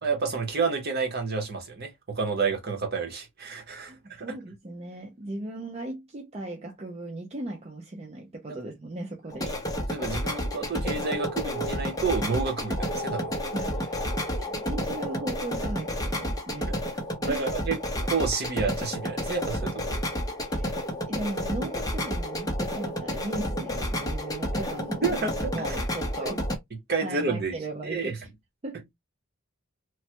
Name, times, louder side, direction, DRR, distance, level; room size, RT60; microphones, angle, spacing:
voice 1, 0.0-4.4 9.4-9.5 9.9-13.3 17.2-20.1 25.0-25.5 26.9-27.5 27.8-28.1, right 4 dB, 50° right, 1.0 m, -30 dB
voice 2, 3.9-9.5 10.8-10.9 13.5-14.0 14.4-16.7 17.3-17.5 20.5-20.8 21.1-26.4 27.0-28.2 28.6-28.8, right 1 dB, 30° right, 0.5 m, -37 dB
sound 1, 9.3-26.6, equal, 20° left, 0.6 m, -30 dB
3.1 x 2.1 x 2.9 m
head